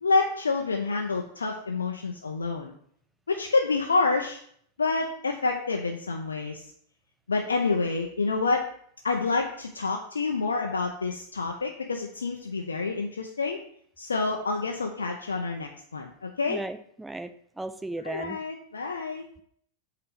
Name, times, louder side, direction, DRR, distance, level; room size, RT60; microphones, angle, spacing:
voice 1, 0.0-2.7 3.3-4.4 4.8-6.6 7.3-8.6 9.0-13.6 14.0-16.6 18.0-19.3, left 3 dB, 75° left, 2 dB, 0.5 m, -28 dB
voice 2, 16.5-17.3 17.6-18.4, right 2 dB, 5° right, 9 dB, 0.5 m, -35 dB
7.6 x 2.9 x 5.0 m, 0.63 s
figure-of-eight pair, 90°, 0 cm